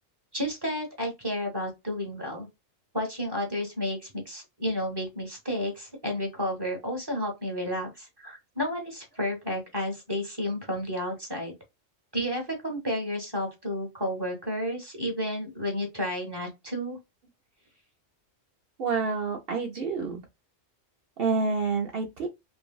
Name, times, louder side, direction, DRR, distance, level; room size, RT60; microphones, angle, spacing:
voice 1, 0.3-2.5 2.9-11.5 12.1-17.0, equal, 20° right, 0.8 m, -31 dB
voice 2, 18.8-20.2 21.2-22.3, right 4 dB, 55° right, 0.7 m, -28 dB
2.9 x 2.6 x 2.2 m
omnidirectional pair, 1.3 m